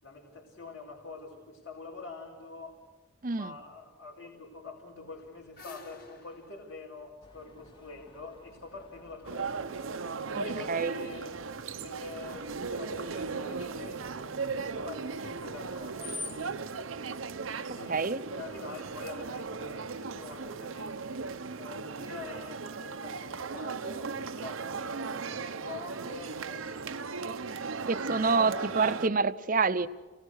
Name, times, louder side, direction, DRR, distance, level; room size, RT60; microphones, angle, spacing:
voice 1, 0.0-2.8 3.2-9.7 10.3-11.4 11.7-14.3 14.6-16.3 17.5-21.0 21.5-27.0 28.2-28.5 28.7-29.2, left 4 dB, 75° left, -5 dB, 4.7 m, -46 dB
voice 2, 3.2-3.5 10.4-10.9 17.9-18.2 27.9-29.9, right 4 dB, 40° right, 12 dB, 0.7 m, -27 dB
sound 1, 5.1-8.2, left 2 dB, 50° left, 4.4 m, -53 dB
Screech, 7.2-16.5, left 3 dB, 25° left, 1.5 m, -50 dB
sound 2, 9.2-29.1, right 4 dB, 80° right, 0.8 m, -37 dB
29.0 x 19.0 x 6.5 m, 1.3 s
head